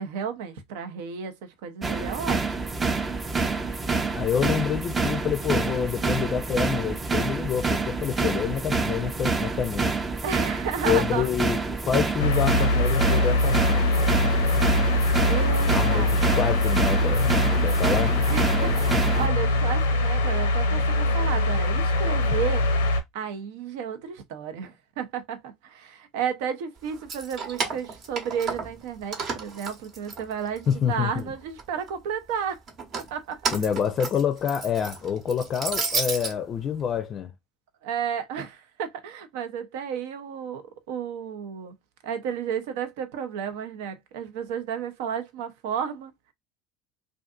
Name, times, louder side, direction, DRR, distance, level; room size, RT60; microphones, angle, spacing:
voice 1, 0.0-2.8 10.2-11.3 15.3-16.1 18.3-22.6 23.1-32.6 33.0-33.4 37.8-41.7 42.0-46.1, right 7 dB, 75° right, 0.6 m, -32 dB
sound 1, 1.8-19.3, right 4 dB, 25° right, 0.5 m, -27 dB
voice 2, 4.1-9.9 10.8-13.8 15.7-18.2 30.7-31.2 33.5-37.3, left 8 dB, 45° left, 0.5 m, -27 dB
sound 2, 12.2-23.0, left 1 dB, 90° left, 0.6 m, -23 dB
Keys jangling, 26.9-28.8 29.1-30.7 31.2-31.9 32.7-36.3, right 4 dB, 50° right, 0.9 m, -32 dB
2.5 x 2.5 x 2.3 m
hypercardioid pair, 80°, 0 cm